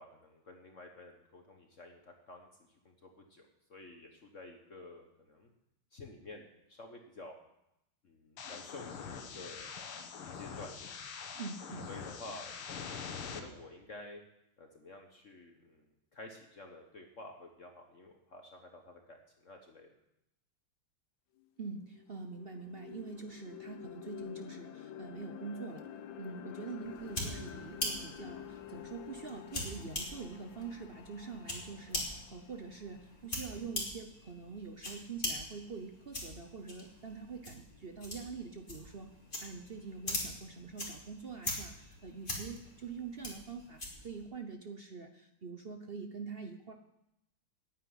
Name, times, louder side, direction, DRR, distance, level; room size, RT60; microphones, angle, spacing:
voice 1, 0.0-5.5 5.9-7.4 8.0-9.7 10.3-10.7 11.9-12.8 13.2-14.2 14.6-19.9, left 2 dB, 45° left, 3 dB, 1.3 m, -51 dB
sound 1, 8.4-13.4, left 6 dB, 90° left, 2.1 m, -44 dB
voice 2, 11.4-12.0 21.6-25.9 26.2-39.1 39.4-46.7, right 5 dB, 55° right, 5 dB, 0.6 m, -45 dB
sound 2, 21.4-21.5 21.9-34.0, left 10 dB, 70° left, 1.5 m, -49 dB
sound 3, 26.8-44.2, left 1 dB, 25° left, 3.1 m, -43 dB
9.5 x 9.0 x 9.5 m, 0.84 s
omnidirectional pair, 2.3 m